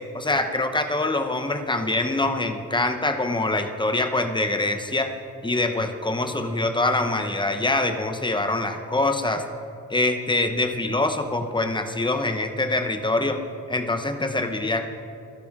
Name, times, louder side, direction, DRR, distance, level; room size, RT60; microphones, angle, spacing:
voice 1, 0.1-5.1 5.4-9.5 9.9-13.4 13.7-14.9, left 2 dB, 15° left, 6 dB, 0.8 m, -24 dB
24.5 x 10.0 x 3.7 m, 2.7 s
wide cardioid pair, 150°, 36 cm